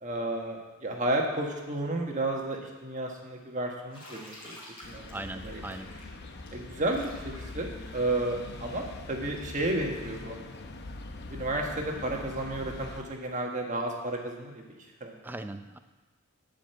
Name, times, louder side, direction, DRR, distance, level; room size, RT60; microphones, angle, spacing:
voice 1, 0.0-4.6 4.9-5.6 6.5-7.1 7.5-7.7 7.9-10.4 11.3-15.3, right 1 dB, 35° right, 1 dB, 1.4 m, -32 dB
Bathtub (filling or washing), 3.9-9.6, left 1 dB, 25° left, 3.7 m, -50 dB
sound 1, 4.8-13.0, left 2 dB, 50° left, 0.8 m, -43 dB
voice 2, 4.9-5.9 15.2-15.8, right 2 dB, 10° right, 8 dB, 0.4 m, -40 dB
12.0 x 5.2 x 7.9 m, 1.2 s
head